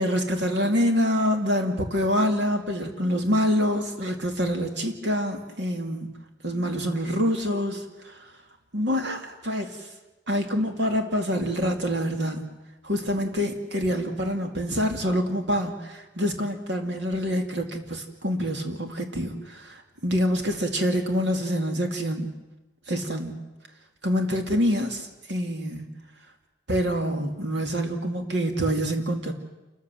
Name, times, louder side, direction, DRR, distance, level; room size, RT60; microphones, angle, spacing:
voice 1, 0.0-6.1 6.4-8.2 8.7-9.8 10.3-12.5 12.8-19.8 20.0-22.3 22.9-23.3 24.0-25.9 26.7-29.3, equal, 65° right, 4 dB, 2.6 m, -26 dB
28.5 x 14.0 x 7.8 m, 1.1 s
head